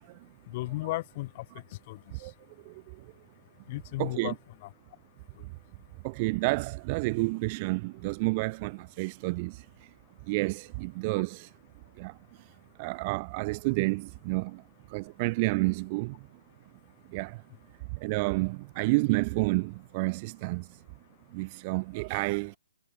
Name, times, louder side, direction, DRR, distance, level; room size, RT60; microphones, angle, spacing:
voice 1, 0.5-1.5 1.9-2.0 3.7-4.7, left 19 dB, 25° left, 5.2 m, -35 dB
voice 2, 4.0-4.3 6.0-9.7 10.3-11.5 12.0-12.1 12.8-14.6 14.9-16.2 17.1-17.4 17.9-20.7 21.3-22.6, right 26 dB, 20° right, 1.9 m, -30 dB
hypercardioid pair, 175°, 0 cm